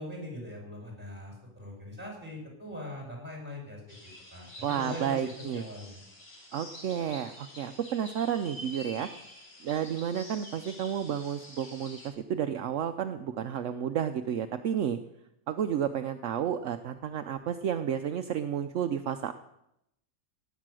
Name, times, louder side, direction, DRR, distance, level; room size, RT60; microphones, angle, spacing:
voice 1, 0.0-4.0 4.3-6.0, left 1 dB, 5° right, 0 dB, 5.0 m, -41 dB
sound 1, 3.9-12.1, left 1 dB, 65° left, 3.2 m, -48 dB
voice 2, 4.6-5.6 6.5-9.1 9.6-15.0 15.5-19.3, right 9 dB, 70° right, 8 dB, 1.0 m, -31 dB
18.0 x 8.3 x 6.3 m, 0.82 s
omnidirectional pair, 1.4 m